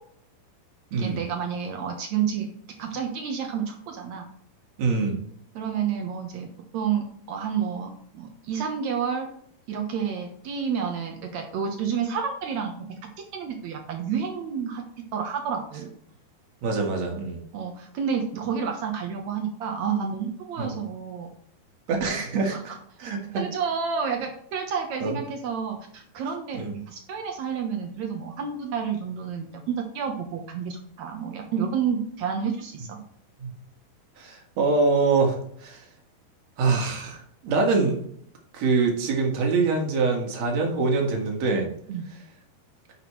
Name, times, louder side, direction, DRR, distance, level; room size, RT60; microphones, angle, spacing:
voice 1, 0.9-2.5 2.8-4.3 5.6-6.5 6.7-9.3 9.7-13.0 13.3-14.8 15.1-15.9 17.5-21.3 22.5-22.6 23.3-33.0 41.9-42.1, right 7 dB, 70° right, 3 dB, 1.7 m, -30 dB
voice 2, 4.8-5.2 16.6-17.4 20.6-20.7 21.9-22.7 23.0-23.2 25.0-25.2 26.5-26.7 33.4-33.5 34.2-35.8 36.6-38.0 38.5-41.7, right 4 dB, 50° right, 1 dB, 2.5 m, -24 dB
10.5 x 6.1 x 3.2 m, 0.65 s
omnidirectional pair, 4.6 m